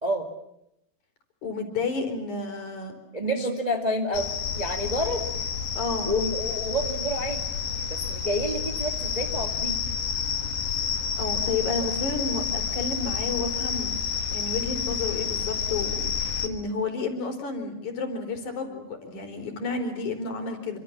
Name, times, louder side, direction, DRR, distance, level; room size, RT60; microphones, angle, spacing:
voice 1, 1.4-3.0 3.2-3.5 5.7-6.1 11.2-14.0 14.3-20.8, left 4 dB, 50° left, 5 dB, 5.5 m, -31 dB
voice 2, 3.1-5.3 6.0-7.4 7.9-9.8, equal, 15° right, 4 dB, 1.7 m, -29 dB
sound 1, 4.1-16.5, left 6 dB, 75° left, 4.0 m, -29 dB
28.0 x 26.5 x 7.3 m, 0.80 s
omnidirectional pair, 4.4 m